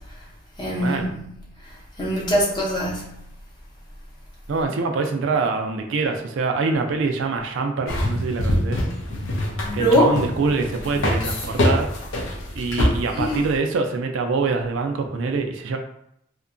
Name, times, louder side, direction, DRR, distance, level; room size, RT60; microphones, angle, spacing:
voice 1, 0.6-1.2 2.0-3.1 9.6-10.1 13.1-13.4, equal, 25° left, -4 dB, 0.7 m, -22 dB
voice 2, 4.5-8.8 9.7-11.9 12.6-15.8, right 4 dB, 70° right, 4 dB, 0.3 m, -24 dB
sound 1, 7.9-13.6, left 1 dB, 80° left, 0.6 m, -25 dB
2.7 x 2.2 x 2.5 m, 0.75 s
head